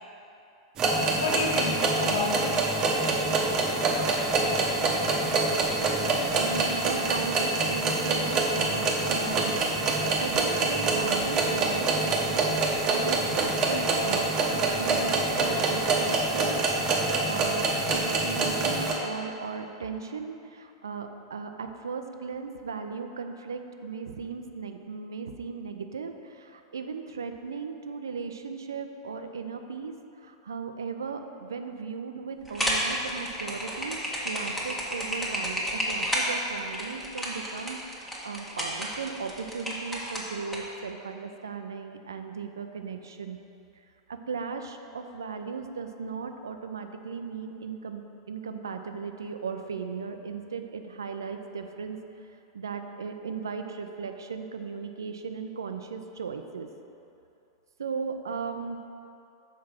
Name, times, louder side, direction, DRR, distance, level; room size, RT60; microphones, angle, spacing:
sound 1, 0.8-18.9, right 3 dB, 30° right, 0.9 m, -26 dB
voice 1, 1.2-3.1 4.5-4.7 9.1-9.4, left 3 dB, 60° left, 1 dB, 0.8 m, -32 dB
voice 2, 6.3-9.6 9.9-14.3 14.8-17.7 17.9-43.4 44.1-52.0 52.5-56.7 57.8-58.8, right 5 dB, 70° right, 7 dB, 0.5 m, -37 dB
sound 2, 32.4-40.6, equal, 5° left, 1.3 m, -31 dB
6.6 x 4.7 x 5.6 m, 2.7 s
figure-of-eight pair, 90°, 2 cm